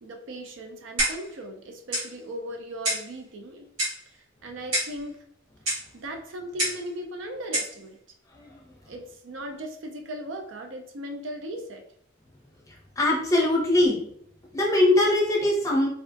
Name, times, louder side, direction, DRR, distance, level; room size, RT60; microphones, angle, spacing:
voice 1, 0.0-3.7 4.1-5.3 5.9-8.0 8.9-11.8, equal, 60° right, 4 dB, 0.4 m, -38 dB
Clock, 1.0-1.3 1.9-2.1 2.8-3.1 3.8-4.1 4.7-5.0 5.7-5.9 6.6-6.9 7.5-7.8, right 1 dB, 85° right, 1.4 m, -27 dB
voice 2, 13.0-14.0 14.5-15.9, left 1 dB, 15° left, -3 dB, 0.8 m, -21 dB
3.4 x 2.3 x 2.5 m, 0.66 s
head